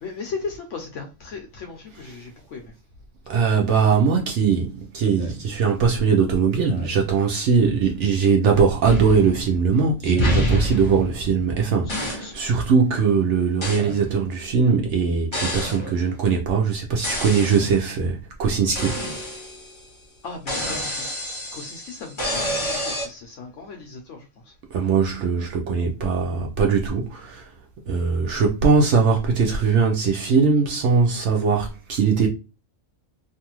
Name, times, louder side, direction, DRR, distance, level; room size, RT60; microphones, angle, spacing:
voice 1, 0.0-2.7 20.2-21.1 21.5-24.5, left 4 dB, 75° left, 0.9 m, -36 dB
voice 2, 3.3-19.0 24.7-27.5 27.9-32.3, right 5 dB, 70° right, 0.8 m, -20 dB
Speech synthesizer, 5.1-5.4 6.6-7.1 8.5-8.8 10.0-10.5 11.8-12.3 13.6-14.2 15.5-16.0 17.3-17.7 18.9-19.2 20.5-20.9 22.2-22.7, equal, 50° left, 0.3 m, -39 dB
sound 1, 8.8-9.8 10.2-11.5 11.9-12.3 13.6-13.9 15.3-15.9 17.0-17.8 18.8-19.9 20.5-23.1, equal, 25° left, 0.9 m, -27 dB
2.6 x 2.4 x 2.9 m
omnidirectional pair, 1.3 m